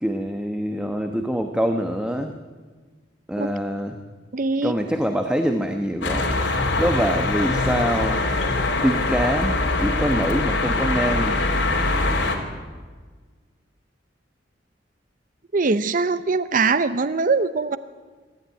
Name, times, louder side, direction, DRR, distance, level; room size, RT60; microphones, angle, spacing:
voice 1, 0.0-2.3 3.3-4.0 4.6-6.4 6.8-8.2 8.8-11.3, equal, 5° right, 5 dB, 1.1 m, -24 dB
voice 2, 4.3-4.8 15.5-17.8, right 4 dB, 45° right, 13 dB, 0.7 m, -22 dB
sound 1, 6.0-12.4, left 2 dB, 85° left, 3.4 m, -23 dB
24.5 x 13.5 x 9.4 m, 1.4 s
head